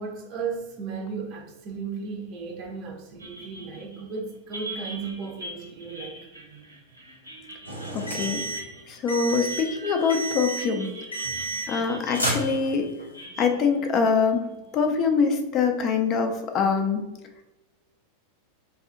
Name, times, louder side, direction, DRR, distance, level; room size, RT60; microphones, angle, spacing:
voice 1, 0.0-6.2 15.7-15.9, right 5 dB, 40° right, 0.6 m, -35 dB
sound 1, 3.2-14.9, equal, 80° right, 0.8 m, -42 dB
sound 2, 7.7-8.7 9.1-9.7 10.1-10.7 11.1-11.9 12.1-13.0, right 2 dB, 90° left, 0.8 m, -31 dB
voice 2, 7.9-8.4 8.9-10.9 11.7-12.9 13.4-14.4 14.7-17.0, left 5 dB, 35° left, 0.5 m, -24 dB
2.7 x 2.4 x 3.7 m
figure-of-eight pair, 90°, 0 cm